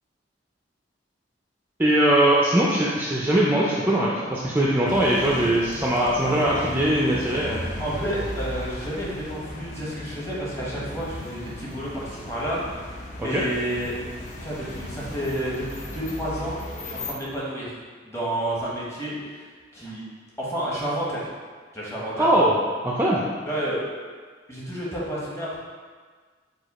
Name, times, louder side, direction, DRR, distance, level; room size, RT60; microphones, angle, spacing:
voice 1, 1.8-7.6 13.2-13.4 22.2-22.6 22.8-23.2, right 1 dB, 10° right, -5 dB, 0.3 m, -21 dB
sound 1, 4.8-17.1, left 1 dB, 40° left, 0.5 m, -36 dB
voice 2, 7.8-14.0 14.4-17.7 18.0-19.4 19.7-20.0 20.4-21.3 21.7-22.4 23.5-23.9 24.5-25.6, right 1 dB, 15° left, -7 dB, 1.0 m, -30 dB
4.8 x 2.3 x 4.0 m, 1.5 s
head